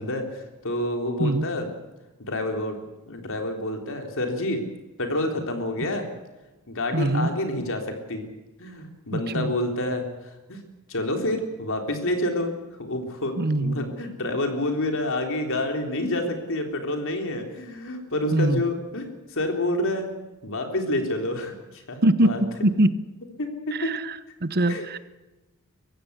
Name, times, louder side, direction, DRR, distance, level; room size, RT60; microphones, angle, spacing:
voice 1, 0.0-1.7 2.3-2.8 3.0-4.6 5.0-6.0 6.7-8.3 8.6-10.0 10.5-10.6 10.9-12.5 12.8-20.1 20.4-22.4 23.4-24.0 24.7-24.9, left 1 dB, 65° left, 4 dB, 3.7 m, -28 dB
voice 2, 6.9-7.3 9.1-9.5 13.4-13.8 18.3-18.6 22.0-22.9 23.7-25.0, right 1 dB, 45° right, 13 dB, 1.0 m, -23 dB
23.0 x 16.0 x 8.2 m, 1.1 s
head